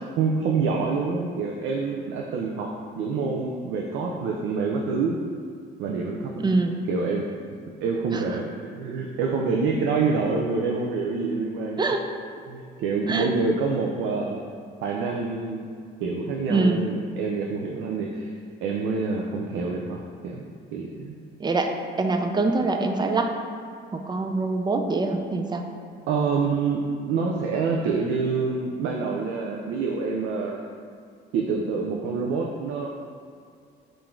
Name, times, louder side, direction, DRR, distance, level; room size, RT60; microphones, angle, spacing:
voice 1, 0.0-2.7 3.0-5.2 5.8-6.5 6.9-7.3 7.8-11.9 12.5-14.4 14.8-15.7 16.0-18.3 18.6-20.4 20.7-21.1 26.1-30.6 31.3-32.9, right 4 dB, 90° right, -1 dB, 0.4 m, -26 dB
voice 2, 6.4-6.7 8.1-8.2 11.8-12.1 13.1-13.3 16.5-16.8 21.4-23.3 23.9-25.6, right 3 dB, 20° right, 5 dB, 0.4 m, -24 dB
3.8 x 2.5 x 4.4 m, 2.2 s
cardioid pair, 90°, 20 cm